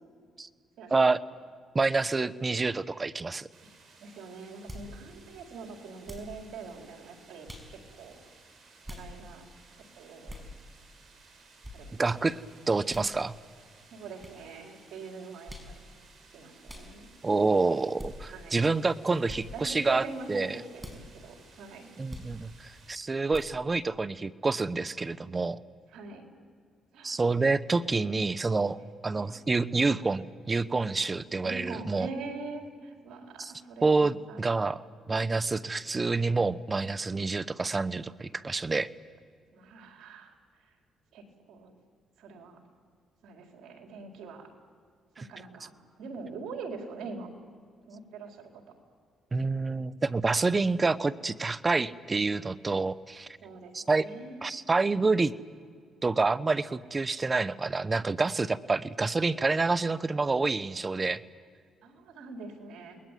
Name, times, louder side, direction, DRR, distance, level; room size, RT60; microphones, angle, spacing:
voice 1, 0.9-1.2 1.7-3.5 12.0-12.4 12.7-13.3 17.2-20.6 22.0-25.6 27.0-32.1 33.4-33.5 33.8-34.8 35.1-38.9 45.2-45.3 49.3-53.3 53.7-54.0 54.4-55.3 56.0-61.2, right 3 dB, 25° right, 14 dB, 0.9 m, -28 dB
sound 1, 3.5-22.9, right 4 dB, 50° right, 6.7 m, -58 dB
voice 2, 4.0-8.2 8.9-9.5 10.0-10.4 11.7-12.3 12.9-13.0 13.9-15.8 16.3-17.1 18.3-18.6 19.5-20.5 20.7-21.9 25.9-26.2 26.9-27.2 28.0-29.4 29.8-29.9 31.4-34.4 39.5-40.3 41.1-41.7 42.2-42.6 43.2-44.5 45.2-45.7 46.0-47.3 47.9-48.6 53.4-54.6 61.8-63.0, right 4 dB, 80° right, 2 dB, 4.4 m, -44 dB
sound 2, 4.7-4.9 6.0-6.3 7.5-7.7 8.8-9.1 10.3-10.5 11.6-11.8 12.9-13.1 14.2-14.4 15.5-15.7 16.7-16.9 18.0-18.1 19.3-19.4 20.8-21.0 22.1-22.3 23.3-23.5, left 1 dB, 10° right, 5.9 m, -43 dB
29.0 x 21.0 x 9.3 m, 2.1 s
cardioid pair, 90°, 0 cm